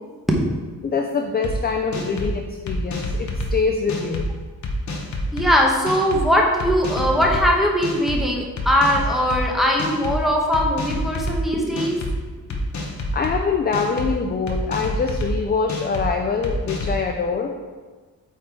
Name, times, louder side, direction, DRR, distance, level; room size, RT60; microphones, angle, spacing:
voice 1, 0.8-4.3 13.1-17.5, left 5 dB, 30° left, 3 dB, 0.4 m, -24 dB
sound 1, 1.4-1.5 1.9-2.3 2.7-3.5 3.9-4.3 4.6-5.5 5.9-6.2 6.6-7.4 7.8-8.2 8.6-9.4 9.8-10.2 10.5-11.4 11.8-12.1 12.5-13.3 13.7-14.1 14.5-15.3 15.7-16.1 16.4-17.0, left 2 dB, 55° left, 1.0 m, -28 dB
voice 2, 5.3-12.0, equal, ahead, -2 dB, 1.0 m, -20 dB
8.4 x 4.3 x 4.6 m, 1.3 s
wide cardioid pair, 175°, 35 cm